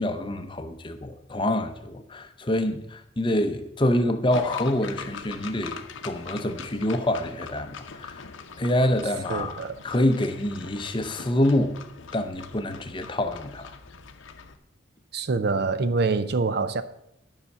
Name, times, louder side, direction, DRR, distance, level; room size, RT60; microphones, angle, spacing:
voice 1, 0.0-8.2 8.6-11.8 12.1-13.7, left 1 dB, 25° left, 0.6 m, -26 dB
sound 1, 4.3-14.6, left 5 dB, 70° left, 0.7 m, -42 dB
voice 2, 9.3-9.8 15.1-16.8, right 4 dB, 50° right, 0.5 m, -25 dB
9.7 x 5.6 x 6.7 m
head